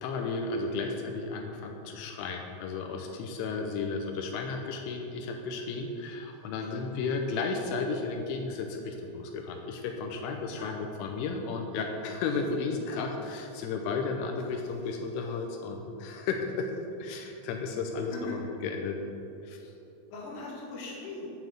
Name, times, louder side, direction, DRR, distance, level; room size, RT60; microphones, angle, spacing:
voice 1, 0.0-16.7 17.0-19.0 19.4-19.7, left 4 dB, 85° left, 3 dB, 3.1 m, -33 dB
voice 2, 20.1-21.3, left 3 dB, 50° left, -5 dB, 1.9 m, -41 dB
9.2 x 5.7 x 7.8 m, 2.9 s
omnidirectional pair, 5.8 m